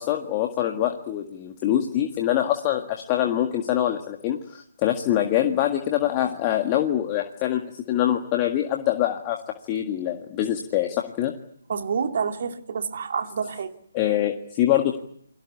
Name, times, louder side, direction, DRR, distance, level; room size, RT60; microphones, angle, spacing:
voice 1, 0.0-7.6 7.9-11.3 13.9-15.0, left 12 dB, 20° left, 3 dB, 1.8 m, -24 dB
voice 2, 11.7-13.7, right 6 dB, 45° right, 6 dB, 2.6 m, -28 dB
29.5 x 22.0 x 8.4 m, 0.71 s
figure-of-eight pair, 145°, 0 cm